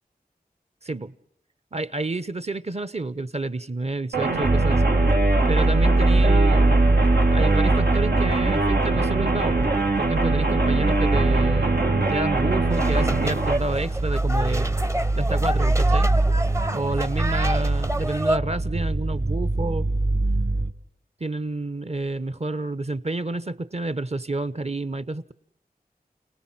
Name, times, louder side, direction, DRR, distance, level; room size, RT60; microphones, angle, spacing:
voice 1, 0.8-1.1 1.7-4.9 5.5-7.0 7.3-9.7 10.0-11.8 12.1-14.8 15.1-16.1 16.7-19.9 21.2-25.3, right 2 dB, 40° right, 1.1 m, -29 dB
sound 1, 4.1-13.6, right 3 dB, 85° right, 2.0 m, -24 dB
sound 2, 4.4-20.7, right 2 dB, 70° right, 1.9 m, -22 dB
sound 3, 12.7-18.4, right 1 dB, 20° right, 0.8 m, -30 dB
29.5 x 19.0 x 5.8 m
wide cardioid pair, 45°, 16 cm